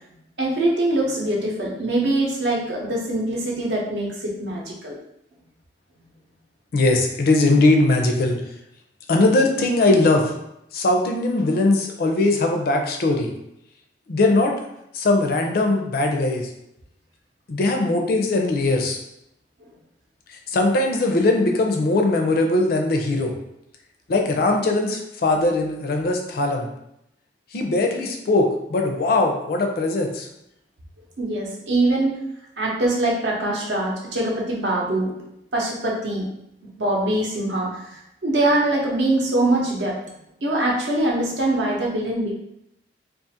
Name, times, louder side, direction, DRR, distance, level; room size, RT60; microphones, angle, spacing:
voice 1, 0.4-5.0 19.6-19.7 31.2-32.1 32.6-35.1 35.5-36.3 36.8-40.0 40.4-42.3, right 2 dB, 75° right, -2 dB, 0.7 m, -23 dB
voice 2, 6.7-8.4 9.1-10.3 10.7-13.3 14.1-14.5 14.9-16.5 17.5-19.0 20.5-23.3 24.1-26.7 27.5-30.3, left 2 dB, 60° left, 3 dB, 0.4 m, -20 dB
2.4 x 2.4 x 2.7 m, 0.80 s
head